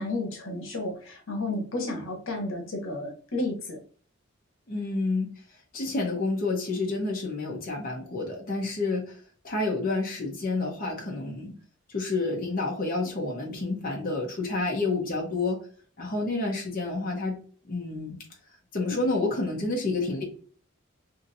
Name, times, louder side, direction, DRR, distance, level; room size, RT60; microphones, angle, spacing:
voice 1, 0.0-3.8, left 2 dB, 90° left, 2 dB, 1.0 m, -32 dB
voice 2, 4.7-5.3 5.7-11.5 11.9-15.6 16.0-17.4 17.7-18.2 18.7-20.2, left 3 dB, 45° left, -1 dB, 0.9 m, -29 dB
2.7 x 2.7 x 2.7 m, 0.43 s
head